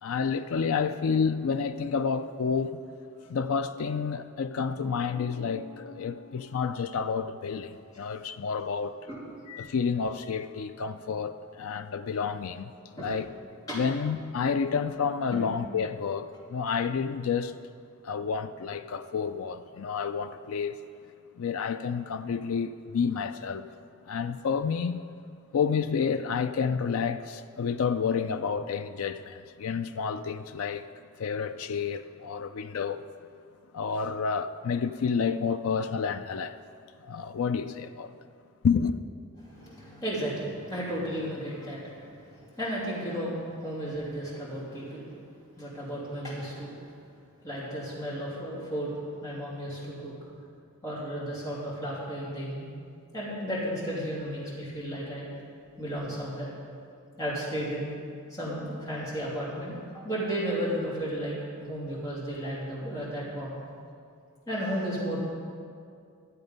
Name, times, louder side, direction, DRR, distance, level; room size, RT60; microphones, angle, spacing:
voice 1, 0.0-2.8 3.3-9.0 9.5-12.7 13.0-13.3 13.7-17.5 18.0-20.8 21.4-23.7 24.1-25.0 25.5-30.8 31.2-33.0 33.7-36.6 37.0-38.1 38.6-39.0, left 6 dB, 75° left, 0.4 m, -29 dB
voice 2, 39.4-45.0 45.6-46.7 47.4-48.9 49.2-50.1 50.8-52.7 53.1-55.3 55.8-56.5 57.2-57.9 58.3-63.6 64.5-65.2, equal, 15° left, 2.9 m, -34 dB
12.5 x 7.9 x 5.3 m
head